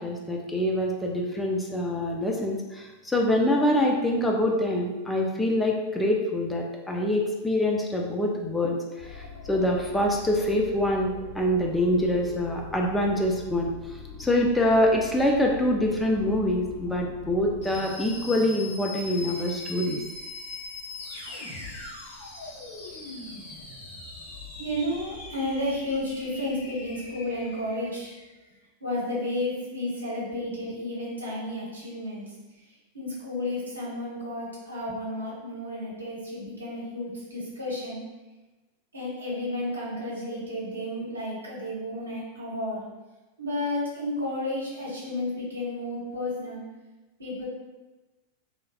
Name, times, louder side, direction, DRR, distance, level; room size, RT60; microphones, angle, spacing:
voice 1, 0.0-13.7 14.2-20.0, left 1 dB, 5° left, -1 dB, 0.3 m, -25 dB
sound 1, 9.0-28.3, left 3 dB, 50° left, 1.0 m, -41 dB
voice 2, 24.6-28.1 28.8-32.3 32.9-38.0 38.9-42.8 43.4-46.6 47.2-47.5, left 1 dB, 80° right, -6 dB, 0.9 m, -32 dB
3.1 x 2.3 x 2.3 m, 1.1 s
figure-of-eight pair, 90°, 0 cm